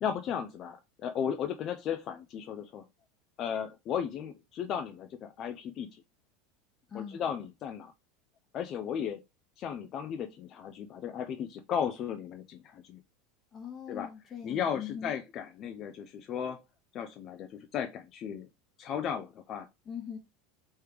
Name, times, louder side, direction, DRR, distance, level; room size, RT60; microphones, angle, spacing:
voice 1, 0.0-0.8 1.0-2.8 3.4-6.0 6.9-7.9 8.5-9.2 9.6-13.0 13.9-14.1 14.4-16.6 16.9-18.5 18.8-19.7, left 8 dB, 45° left, 0.6 m, -35 dB
voice 2, 6.9-7.3 13.5-15.1 19.8-20.2, left 8 dB, 30° left, 1.5 m, -41 dB
3.3 x 3.2 x 4.6 m
hypercardioid pair, 95°, 0 cm